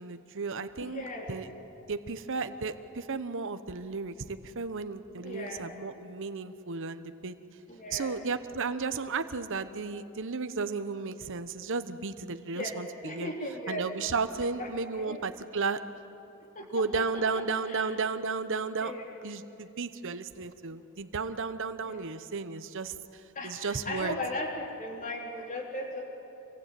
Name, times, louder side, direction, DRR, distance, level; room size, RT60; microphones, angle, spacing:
voice 1, 0.0-1.5 1.9-7.4 7.9-13.3 13.7-15.8 16.7-18.9 19.2-24.2, right 4 dB, 60° right, 11 dB, 1.0 m, -34 dB
voice 2, 0.8-1.3 5.2-5.8 7.7-8.2 12.5-12.8 13.0-13.9 14.6-14.7 15.0-15.2 16.5-16.7 16.9-17.4 17.7-18.0 18.8-19.2 21.9-22.2 23.3-26.0, left 1 dB, 35° left, 1 dB, 3.7 m, -37 dB
26.5 x 22.5 x 9.3 m, 2.9 s
head